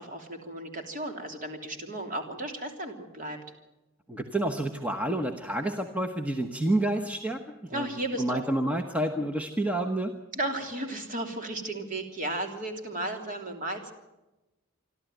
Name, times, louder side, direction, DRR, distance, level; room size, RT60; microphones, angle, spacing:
voice 1, 0.0-3.4 7.7-8.4 10.3-13.9, right 1 dB, 40° right, 4 dB, 3.2 m, -34 dB
voice 2, 4.1-7.4 7.7-7.9 8.2-10.1, right 1 dB, 5° right, 4 dB, 1.0 m, -29 dB
27.0 x 12.5 x 9.2 m, 1.0 s
head